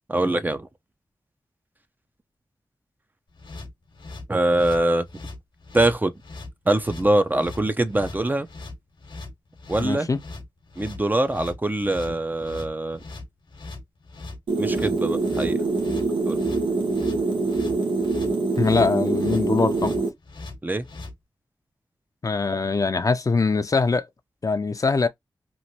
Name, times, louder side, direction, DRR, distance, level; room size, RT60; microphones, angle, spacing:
voice 1, 0.1-0.7 4.3-5.0 5.7-6.1 6.7-8.5 9.7-10.1 10.8-13.0 14.6-15.6 16.3-16.4 20.6-20.9, right 1 dB, 20° right, 0.5 m, -23 dB
sound 1, 3.3-21.1, left 2 dB, 80° left, 1.0 m, -40 dB
voice 2, 9.8-10.2 18.6-19.9 22.2-24.1 24.4-25.1, left 4 dB, 45° left, 0.5 m, -22 dB
sound 2, 14.5-20.1, right 3 dB, 85° right, 0.9 m, -24 dB
3.0 x 2.5 x 2.7 m
cardioid pair, 55°, 8 cm